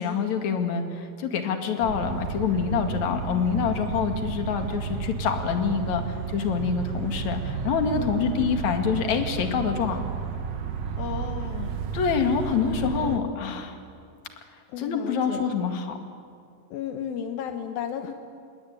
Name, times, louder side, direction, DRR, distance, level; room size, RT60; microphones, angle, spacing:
voice 1, 0.0-10.0 11.9-13.7 14.8-16.0, left 6 dB, 55° left, 5 dB, 3.2 m, -26 dB
sound 1, 1.8-13.2, right 6 dB, 60° right, 2.1 m, -32 dB
voice 2, 2.9-3.2 7.9-8.2 11.0-11.8 12.7-13.4 14.7-15.5 16.7-18.1, left 8 dB, 80° left, 6 dB, 2.9 m, -34 dB
28.0 x 21.0 x 9.3 m, 2.4 s
omnidirectional pair, 4.2 m